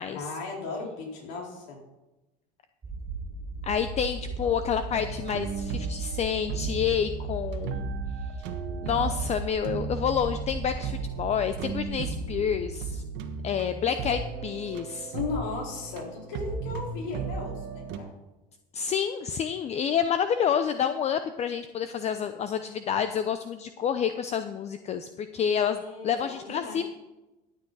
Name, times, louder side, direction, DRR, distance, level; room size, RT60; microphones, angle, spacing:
voice 1, 0.1-1.8 4.4-4.5 15.1-18.1 25.6-26.8, left 4 dB, 65° left, -2 dB, 4.2 m, -36 dB
sound 1, 2.8-12.9, right 3 dB, 20° right, 2.8 m, -37 dB
voice 2, 3.6-7.9 8.8-13.0 13.4-15.1 18.7-26.9, left 8 dB, 35° left, 10 dB, 0.7 m, -28 dB
sound 2, 4.9-18.0, right 5 dB, 60° right, 1.4 m, -36 dB
14.0 x 9.1 x 4.1 m, 1.0 s
supercardioid pair, 100°, 20 cm